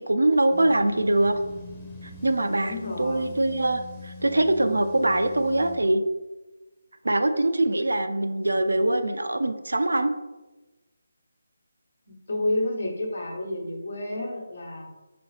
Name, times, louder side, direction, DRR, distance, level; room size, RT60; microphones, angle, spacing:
voice 1, 0.1-1.3 2.0-6.0 7.0-10.1, right 1 dB, 85° right, 8 dB, 0.3 m, -23 dB
sound 1, 0.5-5.9, left 4 dB, 10° left, 0.6 m, -43 dB
voice 2, 2.6-3.3 12.3-14.9, left 1 dB, 65° left, 0 dB, 1.0 m, -30 dB
3.9 x 2.7 x 3.2 m, 1.1 s
figure-of-eight pair, 160°, 0 cm